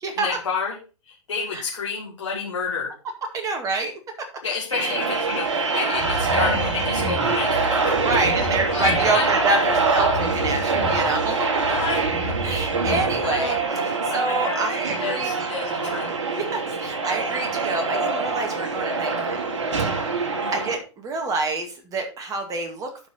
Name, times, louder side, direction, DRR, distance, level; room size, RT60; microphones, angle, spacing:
voice 1, 0.2-0.8 1.0-2.9 4.4-8.0 8.4-9.3 11.3-11.4 11.7-12.0 13.2-13.6 14.1-16.1 20.4-20.7, left 5 dB, 70° left, -3 dB, 2.2 m, -30 dB
voice 2, 3.3-3.9 4.8-4.9 7.9-11.5 12.4-15.5 15.9-19.5 20.5-23.1, right 3 dB, 20° right, 4 dB, 2.1 m, -27 dB
sound 1, 4.7-20.8, right 4 dB, 65° right, 1.9 m, -24 dB
sound 2, 5.9-13.6, right 1 dB, 40° right, 4.0 m, -31 dB
12.0 x 5.0 x 3.9 m, 0.34 s
figure-of-eight pair, 110°, 16 cm